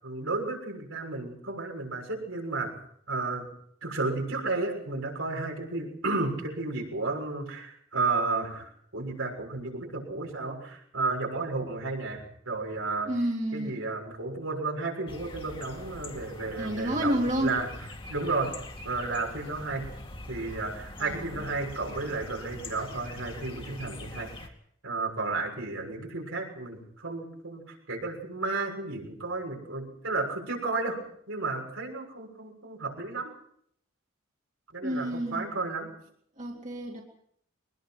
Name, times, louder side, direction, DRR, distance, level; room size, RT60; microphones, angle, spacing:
voice 1, 0.0-2.8 3.1-3.5 3.8-13.1 13.5-17.7 18.1-18.6 18.8-19.8 20.3-24.5 24.8-31.0 31.3-33.3 34.7-35.9, right 3 dB, 80° right, 1 dB, 6.7 m, -32 dB
voice 2, 13.0-13.7 16.6-17.6 21.0-21.4 34.8-35.5 36.4-37.0, equal, 35° right, 0 dB, 2.7 m, -30 dB
sound 1, 15.1-24.5, left 1 dB, 25° left, 2.3 m, -43 dB
23.0 x 20.5 x 6.0 m, 0.68 s
head